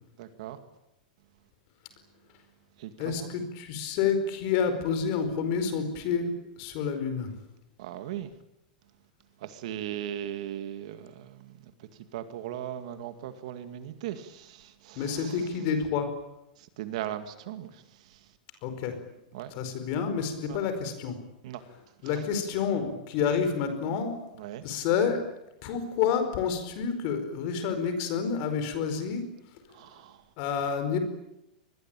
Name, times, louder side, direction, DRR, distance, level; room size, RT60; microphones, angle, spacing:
voice 1, 0.2-0.6 2.8-3.3 7.8-8.3 9.4-15.4 16.6-18.3 19.3-19.5 20.5-20.6 21.4-21.6 24.4-24.6 29.7-30.2, right 11 dB, 45° right, 2.1 m, -38 dB
voice 2, 3.0-7.4 14.9-16.1 18.6-18.9 19.5-21.2 22.0-24.1 24.6-25.2 25.6-29.2 30.4-31.0, left 6 dB, 35° left, 4.8 m, -29 dB
26.0 x 21.5 x 9.1 m
supercardioid pair, 175°, 5 cm